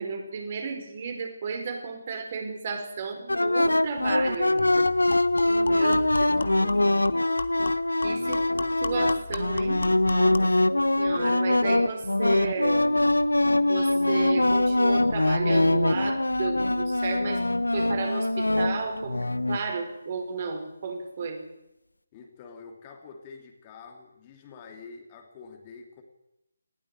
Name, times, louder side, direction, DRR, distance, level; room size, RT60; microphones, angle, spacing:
voice 1, 0.0-4.9 5.6-6.1 8.0-8.4 8.8-10.4 10.7-12.9 13.7-17.4 17.7-21.4, right 5 dB, 35° right, 5 dB, 4.8 m, -33 dB
sound 1, 3.3-19.6, left 2 dB, 75° left, 1.1 m, -23 dB
sound 2, 3.7-3.8 4.1-4.2 4.6-10.6, left 4 dB, 55° left, 1.8 m, -37 dB
voice 2, 5.3-6.9 22.1-26.0, left 5 dB, 25° left, 3 dB, 2.9 m, -46 dB
20.0 x 16.5 x 9.0 m, 0.89 s
figure-of-eight pair, 150°, 0 cm